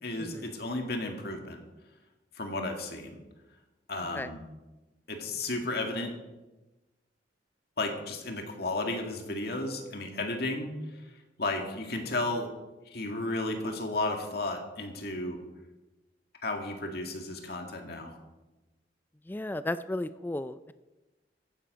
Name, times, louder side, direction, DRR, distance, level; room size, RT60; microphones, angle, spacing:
voice 1, 0.0-1.6 2.4-3.2 3.9-4.5 5.1-6.1 7.8-10.7 11.4-12.5 12.9-15.4 16.4-18.1, left 2 dB, 60° left, 3 dB, 2.0 m, -33 dB
voice 2, 19.3-20.7, left 1 dB, 10° left, 13 dB, 0.3 m, -34 dB
14.5 x 10.0 x 5.1 m, 1.1 s
head